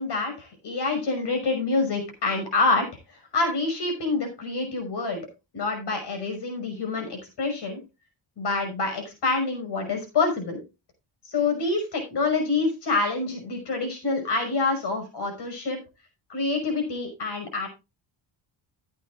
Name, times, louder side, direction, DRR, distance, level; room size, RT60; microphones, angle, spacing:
voice 1, 0.0-2.9 3.3-5.2 5.5-7.8 8.4-10.6 11.3-15.8 16.3-17.7, left 3 dB, 60° left, 5 dB, 5.7 m, -26 dB
15.0 x 9.6 x 2.5 m, 0.27 s
cardioid pair, 115°, 46 cm